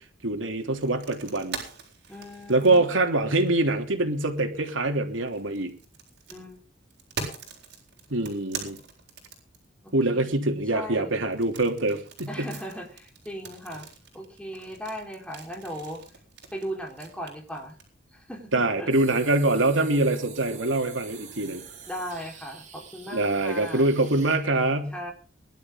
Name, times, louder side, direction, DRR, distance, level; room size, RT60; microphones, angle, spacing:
voice 1, 0.2-1.6 2.5-5.7 8.1-8.8 9.9-12.5 18.5-21.6 23.1-24.9, right 2 dB, 85° right, 4 dB, 3.3 m, -24 dB
sound 1, 0.8-3.7 5.1-9.9 11.3-17.8, right 5 dB, 55° right, 7.7 m, -41 dB
voice 2, 2.1-2.8 6.3-6.6 9.8-11.2 12.3-13.9 14.1-16.0 16.5-17.8 18.1-18.9 21.9-23.9 24.9-25.1, equal, 5° left, 1 dB, 4.4 m, -38 dB
sound 2, 18.9-24.4, right 7 dB, 40° right, 6.0 m, -46 dB
22.5 x 12.5 x 3.9 m, 0.38 s
head